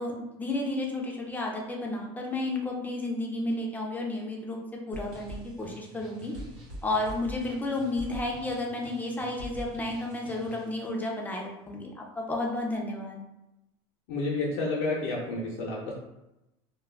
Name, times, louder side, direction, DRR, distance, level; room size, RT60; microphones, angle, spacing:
voice 1, 0.0-4.6 4.9-6.3 6.8-13.2, left 2 dB, 10° left, -1 dB, 0.5 m, -32 dB
sound 1, 4.9-10.8, equal, 85° right, 1.0 m, -44 dB
voice 2, 14.1-15.9, left 2 dB, 75° left, -5 dB, 0.7 m, -30 dB
2.3 x 2.3 x 3.3 m, 0.93 s
supercardioid pair, 130°, 14 cm